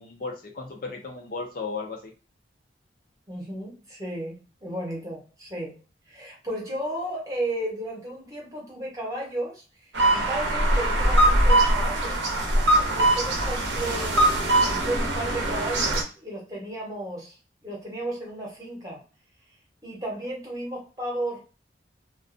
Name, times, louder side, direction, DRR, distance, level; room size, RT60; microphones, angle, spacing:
voice 1, 0.0-2.1, left 4 dB, 50° left, 0.5 m, -35 dB
voice 2, 3.3-5.8 6.1-9.6 10.1-12.3 12.9-17.4 17.6-19.0 19.8-21.4, right 1 dB, 20° right, 0.9 m, -34 dB
sound 1, 9.9-16.0, right 1 dB, 80° right, 0.7 m, -22 dB
2.4 x 2.2 x 2.5 m
head